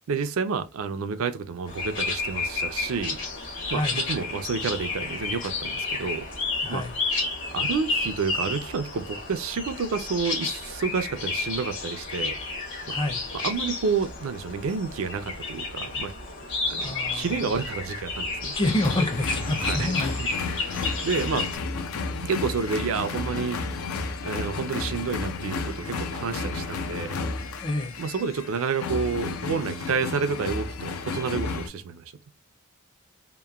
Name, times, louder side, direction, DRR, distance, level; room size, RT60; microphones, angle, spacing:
voice 1, 0.1-3.2 3.7-6.2 6.7-6.8 7.5-12.4 12.9-13.0 13.4-16.1 16.7-18.6 19.6-19.9 20.2-20.3 20.5-21.5 22.2-23.6 24.2-27.2 28.0-32.1, right 5 dB, 75° right, 0.4 m, -29 dB
sound 1, 1.7-21.6, left 3 dB, 60° left, 1.0 m, -31 dB
voice 2, 3.7-4.0 6.6-6.9 12.9-13.2 16.8-17.5 18.5-20.2 27.6-28.0, left 1 dB, 25° left, 0.5 m, -28 dB
sound 2, 18.6-31.7, left 4 dB, 85° left, 0.5 m, -32 dB
2.9 x 2.1 x 2.3 m
head